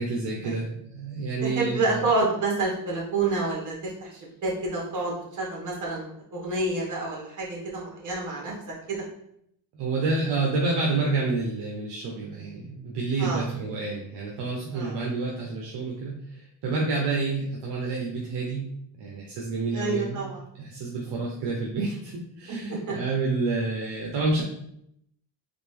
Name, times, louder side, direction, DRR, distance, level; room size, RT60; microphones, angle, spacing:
voice 1, 0.0-2.0 9.7-18.6 19.0-20.2 20.5-24.4, right 3 dB, 65° right, -2 dB, 1.0 m, -29 dB
voice 2, 1.4-8.5 8.9-9.0 13.2-13.4 14.7-15.0 19.7-20.4 22.5-22.9, right 3 dB, 40° right, -3 dB, 1.8 m, -29 dB
4.1 x 3.2 x 3.4 m, 0.74 s
cardioid pair, 130°, 45 cm